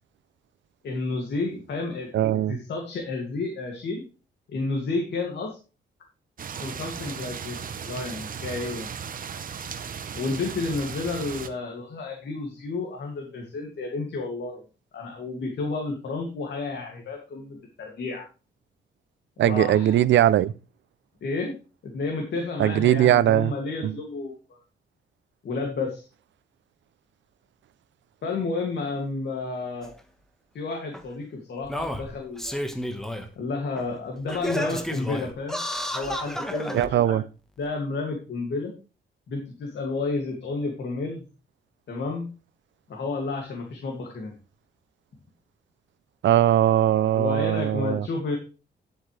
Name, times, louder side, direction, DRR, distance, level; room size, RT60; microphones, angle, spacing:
voice 1, 0.8-2.1 2.5-4.0 4.5-5.6 6.6-8.9 10.1-14.6 14.9-18.3 19.4-20.0 21.2-21.5 21.8-24.3 25.4-26.1 28.2-29.9 30.5-32.6 33.4-37.2 37.6-38.7 39.3-41.2 41.9-42.3 42.9-44.3 47.1-48.4, left 3 dB, 65° left, 2.5 m, -31 dB
voice 2, 2.1-2.6 19.4-20.5 22.6-23.5 23.8-23.9 36.7-37.2 46.2-48.1, right 12 dB, 75° right, 0.6 m, -20 dB
sound 1, 6.4-11.5, right 7 dB, 45° right, 0.9 m, -36 dB
Singing, 29.8-29.9 30.9-31.0 31.6-33.3 33.8-33.9 34.3-36.9 37.6-37.7, equal, ahead, 1.3 m, -31 dB
11.0 x 7.9 x 3.3 m
cardioid pair, 130°, 19 cm